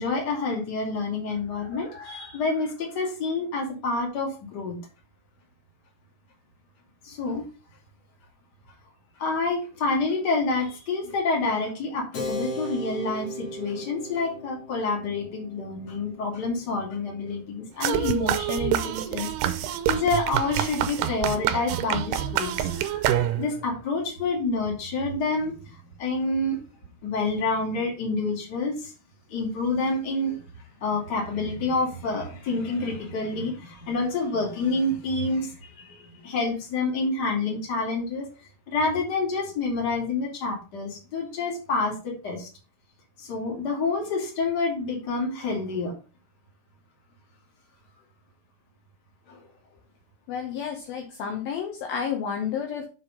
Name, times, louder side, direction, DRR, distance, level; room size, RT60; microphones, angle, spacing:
voice 1, 0.0-4.8 7.0-7.5 9.2-19.3 19.9-26.6 27.0-28.9 29.3-38.3 38.7-42.5 43.2-45.9 49.3-49.5, left 3 dB, 30° left, -1 dB, 2.5 m, -28 dB
Keyboard (musical), 12.1-18.3, equal, 50° left, 2.0 m, -38 dB
sound 1, 17.8-23.6, right 11 dB, 80° right, 2.6 m, -27 dB
voice 2, 50.3-52.9, left 7 dB, 70° left, 2 dB, 2.6 m, -31 dB
7.2 x 4.8 x 5.2 m, 0.33 s
omnidirectional pair, 4.9 m